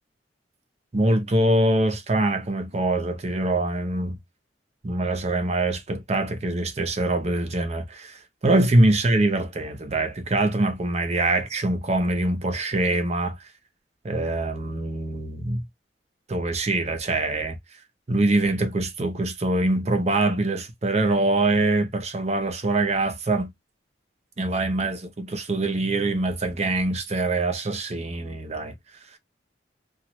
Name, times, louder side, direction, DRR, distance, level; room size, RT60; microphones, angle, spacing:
voice 1, 0.9-4.2 4.8-13.4 14.0-15.6 16.3-17.6 18.1-23.5 24.4-28.7, right 2 dB, 40° right, 0.7 m, -24 dB
2.9 x 2.5 x 3.0 m
head